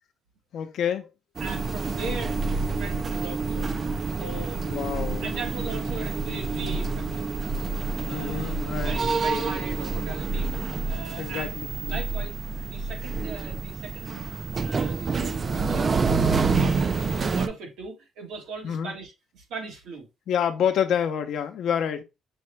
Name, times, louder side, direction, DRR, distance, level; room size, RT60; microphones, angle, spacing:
voice 1, 0.5-1.1 4.6-5.3 8.0-8.9 9.3-9.6 11.2-12.0 18.6-18.9 20.3-22.0, left 8 dB, 70° left, 0.7 m, -28 dB
sound 1, 1.4-17.5, right 4 dB, 30° right, 0.3 m, -28 dB
voice 2, 1.4-3.7 4.2-4.8 5.2-7.3 8.0-8.5 8.8-10.5 10.8-11.5 11.8-12.4 12.7-16.0 16.3-20.1, right 3 dB, 85° right, 1.5 m, -39 dB
6.0 x 2.2 x 3.1 m
cardioid pair, 125°, 0 cm